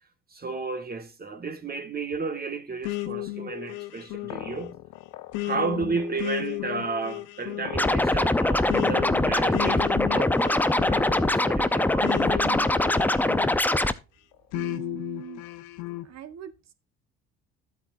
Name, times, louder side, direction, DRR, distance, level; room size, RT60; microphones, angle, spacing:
voice 1, 0.3-4.8 5.4-13.5 13.7-14.0, right 4 dB, 30° right, 2.0 m, -33 dB
sound 1, 2.8-13.9 14.5-16.1, left 17 dB, 75° left, 0.8 m, -34 dB
Scratching (performance technique), 7.7-13.9, left 1 dB, 5° left, 0.7 m, -23 dB
voice 2, 14.5-15.5 16.0-16.7, right 10 dB, 55° right, 1.4 m, -41 dB
12.5 x 8.2 x 2.6 m
hypercardioid pair, 65°, 31 cm